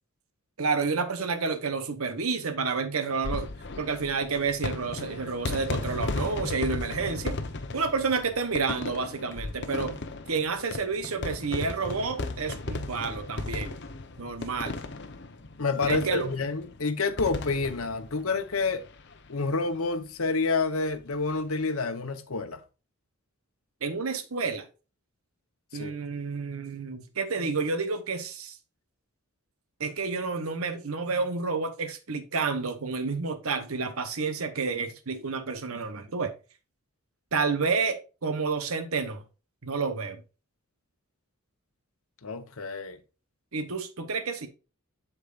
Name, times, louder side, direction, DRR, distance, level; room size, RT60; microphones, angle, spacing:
voice 1, 0.6-3.5 3.8-7.3 7.7-10.0 10.3-13.8 14.2-14.8 15.9-16.3 23.8-24.7 25.7-28.6 29.8-36.3 37.3-39.2 39.6-40.2 43.5-44.5, right 4 dB, 85° right, 1.0 m, -30 dB
sound 1, 3.1-19.1 19.5-19.6 19.7-19.8 21.1-21.4, left 3 dB, 55° left, 0.9 m, -36 dB
voice 2, 15.6-18.8 19.3-22.6 25.7-25.9 42.2-43.0, left 4 dB, 80° left, 1.0 m, -28 dB
8.3 x 7.3 x 2.5 m
head